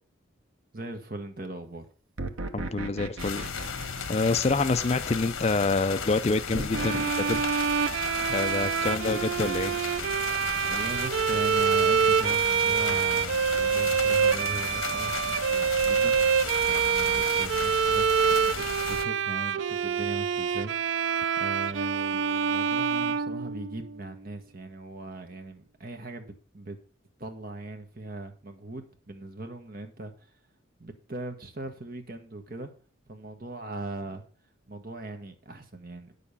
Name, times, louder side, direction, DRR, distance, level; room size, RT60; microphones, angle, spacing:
voice 1, 0.7-1.9 8.4-8.6 10.2-16.2 16.7-26.8 27.2-30.4 30.8-32.7 33.1-34.2 34.7-36.1, right 2 dB, 45° right, 1.4 m, -40 dB
sound 1, 2.2-5.0 6.5-7.1, right 2 dB, 80° right, 1.0 m, -36 dB
voice 2, 2.5-3.5 4.1-7.4 8.3-9.8, left 3 dB, 30° left, 0.4 m, -27 dB
sound 2, 3.2-19.0, left 6 dB, 80° left, 1.2 m, -35 dB
Bowed string instrument, 6.7-24.0, right 7 dB, 60° right, 0.4 m, -26 dB
9.8 x 6.9 x 5.5 m
head